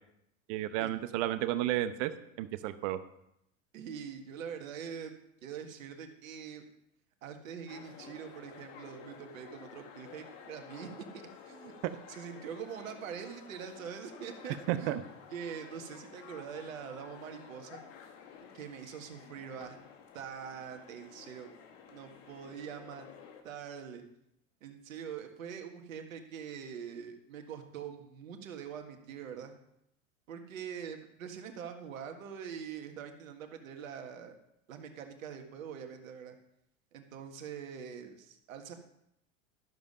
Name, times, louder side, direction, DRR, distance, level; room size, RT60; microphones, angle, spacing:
voice 1, 0.5-2.1 2.4-3.0 11.8-11.9 14.7-15.0, right 14 dB, 60° right, 12 dB, 0.9 m, -32 dB
voice 2, 3.7-5.1 5.4-6.6 7.2-11.7 12.1-15.0 15.3-17.8 18.5-19.8 20.1-21.5 21.9-23.1 23.4-24.0 24.6-29.6 30.3-34.4 34.7-36.4 36.9-38.7, right 7 dB, 80° right, 5 dB, 1.8 m, -44 dB
sound 1, 7.7-23.4, left 7 dB, 65° left, 1.9 m, -52 dB
13.0 x 7.2 x 5.5 m, 0.77 s
hypercardioid pair, 90°, 40 cm